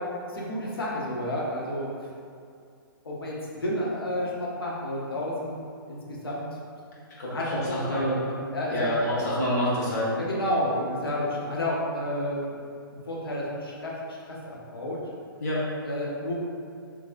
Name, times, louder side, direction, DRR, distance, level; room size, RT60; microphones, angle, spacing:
voice 1, 0.3-1.9 3.0-5.6 5.9-6.0 6.2-6.5 7.3-8.9 10.1-12.4 13.1-15.0 15.8-16.3, left 1 dB, 75° left, -5 dB, 0.9 m, -30 dB
voice 2, 7.2-8.1 8.7-10.1 15.4-15.7, equal, 45° left, -7 dB, 1.3 m, -27 dB
3.7 x 3.1 x 2.5 m, 2.3 s
figure-of-eight pair, 125°, 12 cm